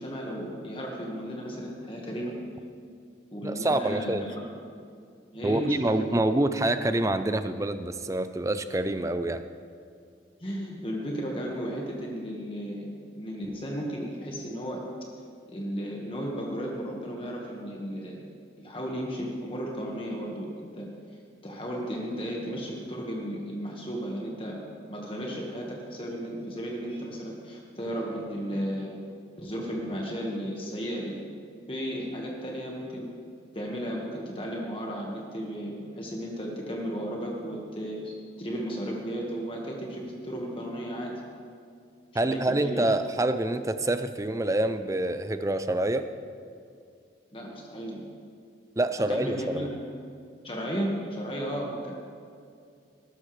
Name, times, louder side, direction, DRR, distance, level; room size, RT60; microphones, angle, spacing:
voice 1, 0.0-2.4 3.3-4.4 5.3-6.2 10.4-12.8 13.1-14.8 15.5-18.2 18.6-20.9 21.4-24.6 24.9-29.0 29.4-31.2 31.7-33.1 33.5-41.2 42.2-42.9 47.3-48.0 49.1-50.0 50.4-51.9, equal, 30° left, -1 dB, 1.6 m, -34 dB
voice 2, 3.4-4.3 5.4-9.4 42.1-46.1 48.8-49.7, right 1 dB, 15° right, 10 dB, 0.5 m, -26 dB
19.5 x 12.5 x 3.3 m, 2.4 s
head